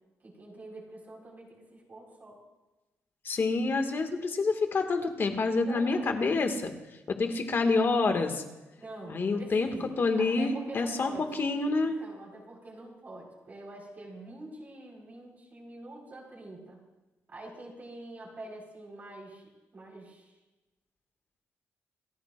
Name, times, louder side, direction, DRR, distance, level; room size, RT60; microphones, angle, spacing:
voice 1, 0.2-2.4 5.6-6.1 8.8-11.3 11.8-16.8 17.3-20.3, right 2 dB, 35° right, -3 dB, 4.4 m, -46 dB
voice 2, 3.3-6.7 7.1-8.4 9.1-12.0, left 3 dB, 45° left, 5 dB, 1.9 m, -27 dB
29.0 x 14.0 x 2.5 m, 1.1 s
cardioid pair, 110°, 5 cm